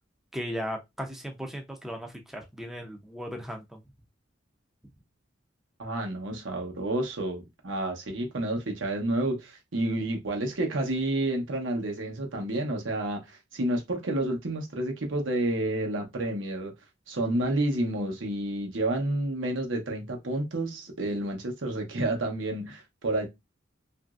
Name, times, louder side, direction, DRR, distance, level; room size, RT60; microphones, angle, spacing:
voice 1, 0.3-3.8, equal, ahead, 0.4 m, -36 dB
voice 2, 5.8-16.7 17.1-23.3, right 1 dB, 85° right, 0.9 m, -30 dB
2.9 x 2.5 x 2.3 m
head